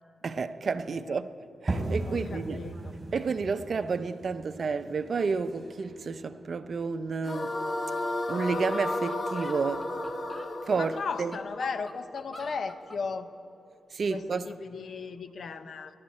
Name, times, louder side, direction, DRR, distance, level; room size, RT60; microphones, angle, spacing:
voice 1, 0.2-1.3 1.6-2.6 3.1-7.6 8.3-10.0 10.7-11.4 13.9-14.5, right 5 dB, 55° right, 0.6 m, -30 dB
sound 1, 1.7-7.1, right 2 dB, 30° right, 3.2 m, -37 dB
voice 2, 2.1-2.7 10.8-13.3 14.1-15.9, left 5 dB, 65° left, 0.8 m, -36 dB
sound 2, 7.2-12.4, left 2 dB, 50° left, 1.4 m, -33 dB
sound 3, 8.0-8.1 8.3-8.4 8.6-10.5 11.1-13.0, left 1 dB, 15° left, 1.3 m, -47 dB
28.0 x 11.5 x 4.3 m
cardioid pair, 75°, 0 cm